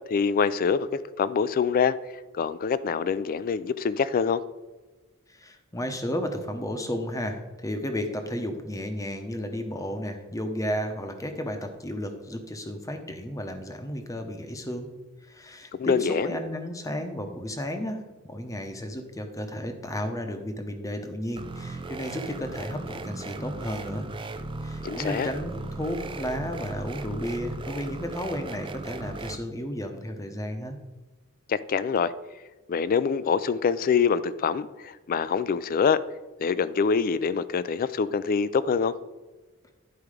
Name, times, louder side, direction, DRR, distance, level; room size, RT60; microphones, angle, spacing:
voice 1, 0.1-2.0 2.3-4.4 15.8-16.4 24.8-25.3 31.5-32.1 32.7-36.0 36.4-38.9, left 6 dB, 40° left, 16 dB, 0.3 m, -25 dB
voice 2, 5.3-14.9 15.2-24.1 24.6-30.8, equal, 15° left, 6 dB, 0.8 m, -33 dB
sound 1, 21.4-29.4, right 2 dB, 25° right, 0.4 m, -37 dB
10.5 x 4.7 x 4.9 m, 1.2 s
head